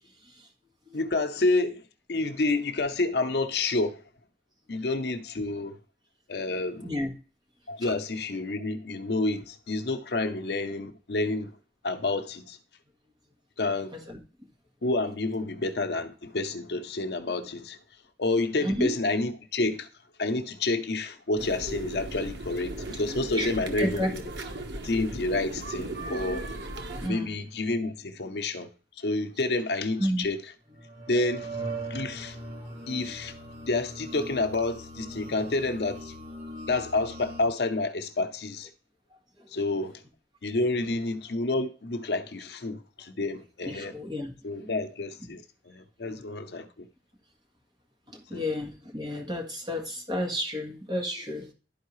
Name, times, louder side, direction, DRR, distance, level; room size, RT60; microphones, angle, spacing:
voice 1, 0.9-4.0 4.7-5.8 6.3-6.9 7.7-11.5 11.8-12.6 13.6-13.9 14.8-17.8 18.2-19.9 20.2-24.2 24.8-26.4 27.1-28.7 29.0-30.4 31.1-31.6 31.9-32.4 32.9-33.3 33.7-36.1 36.7-38.7 39.5-40.0 40.4-44.0 44.4-46.9 48.3-48.5, left 2 dB, 70° left, 0.8 m, -29 dB
voice 2, 6.8-7.1 7.8-7.9 13.9-14.2 18.6-18.9 23.3-23.5 23.8-24.1 27.0-27.4 30.0-30.3 43.7-44.3 44.6-44.8 45.2-45.3 46.0-46.3 48.1-51.5, left 1 dB, 25° right, 1.7 m, -31 dB
sound 1, 21.4-27.1, right 2 dB, 85° right, 1.1 m, -37 dB
sound 2, 30.7-37.5, right 2 dB, 45° right, 2.9 m, -40 dB
11.5 x 4.6 x 3.1 m
head